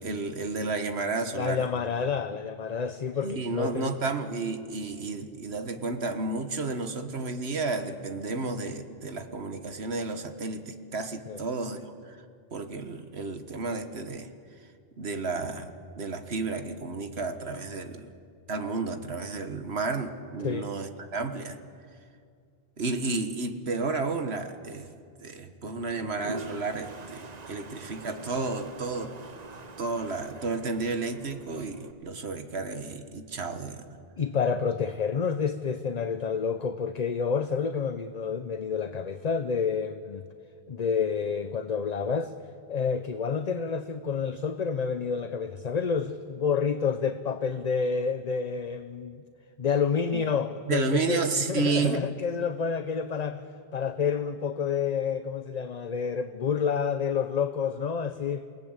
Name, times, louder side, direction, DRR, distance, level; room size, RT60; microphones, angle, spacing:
voice 1, 0.0-1.7 3.2-12.2 12.5-14.3 15.0-18.1 18.5-21.6 22.8-24.9 25.2-29.1 29.8-34.0 50.1-50.2 50.7-52.0, right 3 dB, 90° right, 8 dB, 1.7 m, -32 dB
voice 2, 1.4-3.9 11.3-11.4 20.4-20.7 34.2-40.2 40.7-42.3 42.7-49.2 49.6-51.2 51.5-53.5 53.7-58.5, left 6 dB, 45° left, 10 dB, 0.8 m, -29 dB
Toilet flush, 25.8-31.9, right 3 dB, 40° right, 1.1 m, -44 dB
28.0 x 18.5 x 8.1 m, 2.3 s
omnidirectional pair, 1.0 m